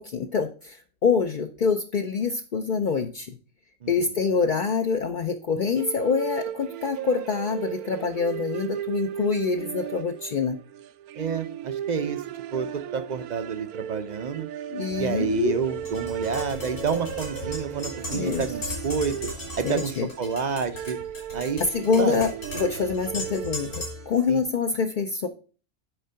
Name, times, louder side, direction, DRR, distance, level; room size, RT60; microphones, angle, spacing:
voice 1, 0.0-3.4 3.9-10.6 14.7-15.7 18.1-18.8 19.6-20.1 21.7-25.3, left 5 dB, 60° left, 5 dB, 0.5 m, -26 dB
sound 1, 5.8-24.3, right 11 dB, 85° right, 1.1 m, -36 dB
voice 2, 11.2-12.2 12.5-14.5 15.0-19.1 19.6-21.0 21.3-21.6 22.0-22.2 24.3-24.4, right 6 dB, 60° right, 9 dB, 0.4 m, -29 dB
sound 2, 14.9-20.0, equal, 25° right, 0.7 m, -46 dB
Tap, 15.9-24.1, left 2 dB, 80° left, 4.4 m, -37 dB
10.0 x 3.7 x 5.5 m, 0.38 s
omnidirectional pair, 1.5 m